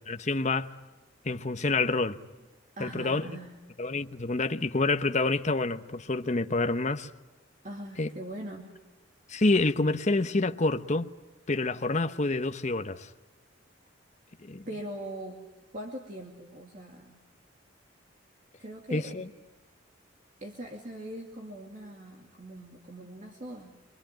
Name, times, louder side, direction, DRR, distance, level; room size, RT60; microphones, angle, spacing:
voice 1, 0.1-0.7 1.2-2.2 2.8-3.3 3.8-7.1 8.0-8.1 9.3-11.1 11.5-13.1 14.4-14.7 18.9-19.3, left 3 dB, 35° left, 0.9 m, -27 dB
voice 2, 2.8-3.5 7.6-8.7 14.7-15.4 15.7-17.3 18.6-19.3 20.4-23.7, right 1 dB, 40° right, 2.5 m, -41 dB
26.5 x 24.5 x 9.0 m
head